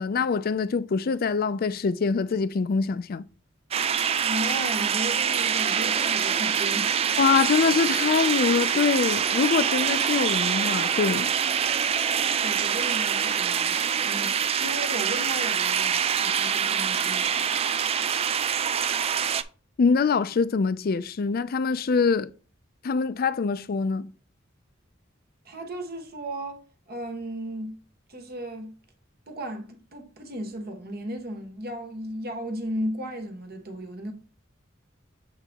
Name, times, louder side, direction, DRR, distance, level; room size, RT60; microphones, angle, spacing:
voice 1, 0.0-3.2 7.2-11.3 19.8-22.3 22.8-24.1, left 5 dB, 50° left, 0.4 m, -24 dB
sound 1, 3.7-19.4, right 8 dB, 30° right, 0.3 m, -25 dB
voice 2, 4.2-7.0 12.4-17.5 25.4-27.8 28.1-28.7 29.3-34.1, right 1 dB, 50° right, 1.3 m, -35 dB
7.4 x 4.0 x 3.5 m
head